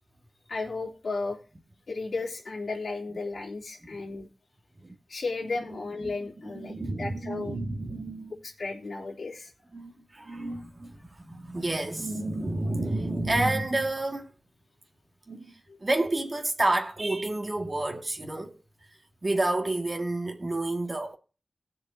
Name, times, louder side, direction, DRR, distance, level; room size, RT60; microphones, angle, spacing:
voice 1, 0.5-1.4 1.9-4.3 5.1-7.6 8.4-9.5, left 3 dB, 75° left, 3.2 m, -34 dB
voice 2, 5.4-6.1 6.4-8.4 9.7-14.3 15.3-15.5 15.8-18.6 19.2-21.1, right 2 dB, 35° right, 2.0 m, -30 dB
19.0 x 6.6 x 2.8 m
wide cardioid pair, 85°, 0 cm